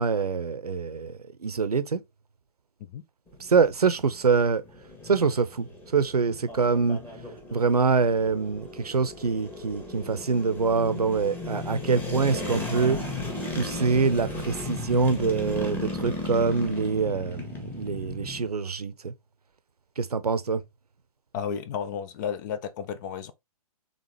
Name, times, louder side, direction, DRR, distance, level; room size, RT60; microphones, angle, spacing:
voice 1, 0.0-2.0 3.4-4.6 5.0-5.7 5.9-7.0 7.5-13.0 13.5-19.1 20.0-20.6, right 5 dB, 85° right, 0.7 m, -25 dB
sound 1, 3.3-18.5, left 2 dB, 10° left, 1.4 m, -36 dB
voice 2, 21.3-23.3, left 7 dB, 30° left, 0.4 m, -33 dB
4.0 x 3.5 x 3.3 m
figure-of-eight pair, 125°, 19 cm